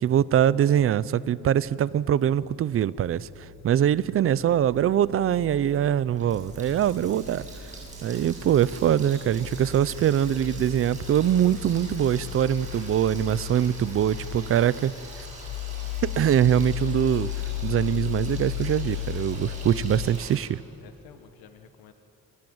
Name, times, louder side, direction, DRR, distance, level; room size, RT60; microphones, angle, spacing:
voice 1, 0.0-7.5 8.0-14.9 16.0-17.3 17.6-20.6, right 10 dB, 40° right, 19 dB, 0.5 m, -23 dB
sound 1, 3.0-20.1, left 16 dB, 45° left, 0.6 m, -36 dB
sound 2, 4.7-10.9, right 5 dB, 85° right, 3.3 m, -48 dB
Water tap faucet, 5.9-20.4, right 2 dB, 20° right, 7.6 m, -44 dB
voice 2, 6.9-7.3 20.8-21.9, left 8 dB, 85° left, 7 dB, 1.4 m, -52 dB
28.0 x 27.0 x 7.9 m, 2.9 s
cardioid pair, 180°, 36 cm